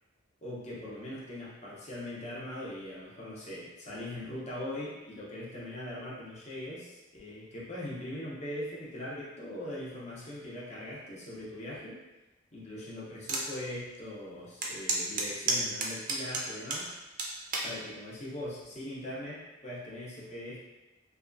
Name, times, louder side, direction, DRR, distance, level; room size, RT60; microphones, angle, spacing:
voice 1, 0.4-12.0 12.5-16.9 17.6-20.6, left 1 dB, 35° left, -6 dB, 0.7 m, -41 dB
sound 1, 13.3-13.5 13.9-14.0 14.6-16.8 17.2-17.7 18.4-18.7, right 3 dB, 45° right, 0.4 m, -30 dB
2.7 x 2.3 x 2.5 m, 1.1 s
head